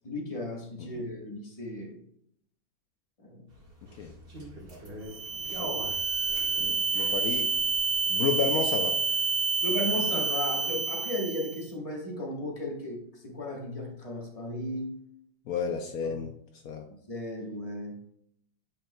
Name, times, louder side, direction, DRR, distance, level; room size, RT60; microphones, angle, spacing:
voice 1, 0.0-1.9 3.2-3.4 6.6-6.8 9.6-14.9 16.0-16.3 17.1-18.0, left 1 dB, 20° left, -1 dB, 1.1 m, -35 dB
sound 1, 3.5-10.0, equal, 30° right, 1.6 m, -45 dB
sound 2, 5.0-11.6, right 5 dB, 80° right, 1.8 m, -28 dB
voice 2, 6.9-7.5 8.1-9.0 15.5-16.3 16.6-16.8, left 6 dB, 85° left, 5 dB, 0.8 m, -31 dB
8.8 x 5.5 x 2.3 m, 0.73 s
omnidirectional pair, 2.2 m